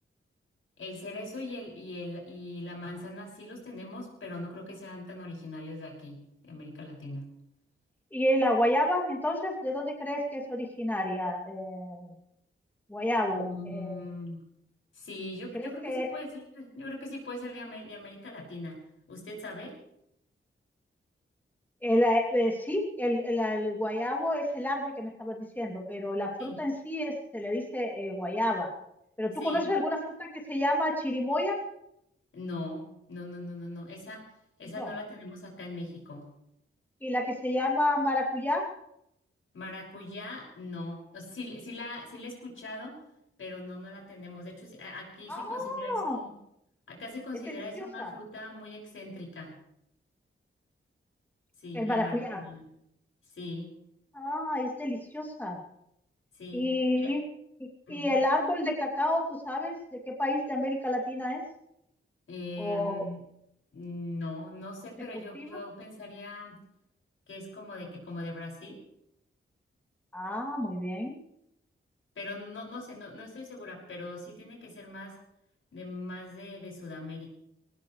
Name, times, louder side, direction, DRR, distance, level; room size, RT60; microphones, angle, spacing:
voice 1, 0.8-7.3 13.3-14.4 14.9-18.8 19.1-19.8 26.4-26.6 29.4-29.7 32.3-34.3 34.6-36.3 39.5-43.0 43.4-46.3 46.9-49.5 51.6-52.6 53.3-53.7 56.3-56.6 56.9-57.1 57.9-58.2 62.3-63.2 63.7-66.6 67.3-68.8 72.1-75.2 75.7-77.3, left 2 dB, 75° left, -1 dB, 6.2 m, -41 dB
voice 2, 8.1-12.1 12.9-14.0 15.5-16.1 21.8-28.7 29.2-31.6 34.8-34.9 37.0-38.6 45.3-46.2 47.8-48.1 51.7-52.4 54.1-55.6 56.5-57.2 57.9-59.7 60.1-61.4 62.6-63.0 65.3-65.6 70.1-71.2, left 1 dB, 10° left, -1 dB, 2.8 m, -29 dB
21.5 x 19.0 x 3.3 m, 0.77 s
wide cardioid pair, 115°, 21 cm